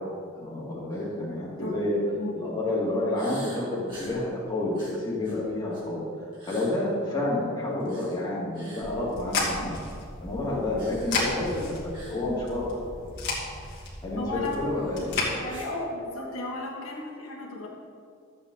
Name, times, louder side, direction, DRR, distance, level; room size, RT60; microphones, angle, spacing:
voice 1, 0.4-2.0 2.3-6.0 6.4-9.7 10.2-12.8 14.0-15.1, left 2 dB, 20° left, -7 dB, 2.5 m, -29 dB
sound 1, 0.9-1.1 1.5-1.7 3.1-4.2 4.7-5.9 6.3-6.7 7.8-8.2 8.5-8.9 10.8-11.3 11.9-12.2 12.5-12.6 13.1-13.2 14.7-15.7, right 1 dB, 25° right, 3.1 m, -45 dB
sound 2, 8.8-15.3, left 2 dB, 55° left, 2.6 m, -33 dB
voice 2, 14.2-14.7 15.3-17.7, left 2 dB, 90° left, -2 dB, 1.9 m, -34 dB
13.5 x 8.1 x 4.0 m, 2.3 s
head